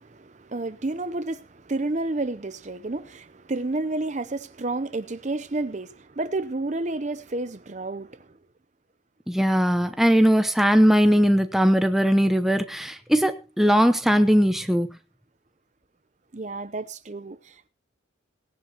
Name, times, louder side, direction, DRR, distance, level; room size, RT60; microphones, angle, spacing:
voice 1, 0.0-8.3 16.3-17.7, right 2 dB, 35° right, 0.7 m, -30 dB
voice 2, 9.3-14.9, equal, ahead, 0.8 m, -19 dB
18.5 x 11.0 x 3.0 m
head